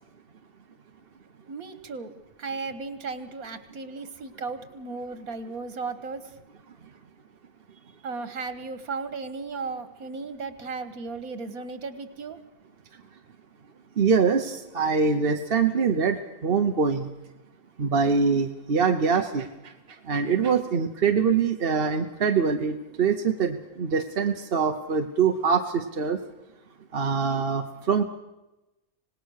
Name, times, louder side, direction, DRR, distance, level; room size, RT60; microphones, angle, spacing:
voice 1, 1.5-2.1 2.4-6.3 8.0-12.4, right 4 dB, 80° right, 11 dB, 1.9 m, -35 dB
voice 2, 14.0-17.1 17.8-19.7 20.1-26.2 26.9-28.0, right 5 dB, 45° right, 5 dB, 1.0 m, -24 dB
26.0 x 19.0 x 6.5 m, 0.99 s
omnidirectional pair, 1.5 m